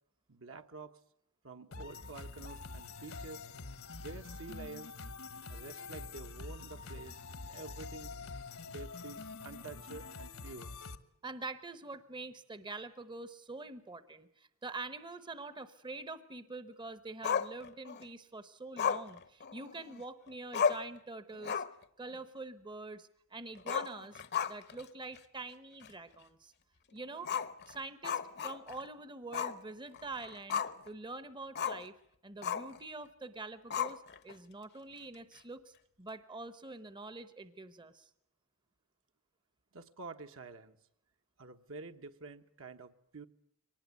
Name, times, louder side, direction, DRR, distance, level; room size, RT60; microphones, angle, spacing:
voice 1, 0.3-1.0 1.4-3.5 3.9-4.9 5.5-7.2 7.4-8.1 8.7-10.7 39.7-40.8 41.4-43.3, right 3 dB, 65° right, 6 dB, 1.3 m, -48 dB
sound 1, 1.7-11.0, left 3 dB, 70° left, 1.3 m, -46 dB
voice 2, 11.2-21.6 22.0-24.2 24.5-26.5 26.9-27.3 27.7-31.9 32.2-38.1, right 3 dB, 20° right, 13 dB, 0.9 m, -45 dB
Growling, 17.2-18.0 18.8-20.0 20.3-20.4 20.5-21.0 21.3-21.8 22.1-22.2 23.6-24.8 25.2-25.3 25.8-25.9 27.2-28.9 29.3-29.6 29.9-30.9 31.6-31.9 32.4-32.8 33.7-34.3, left 7 dB, 50° left, 0.9 m, -34 dB
23.5 x 19.5 x 9.2 m, 0.72 s
head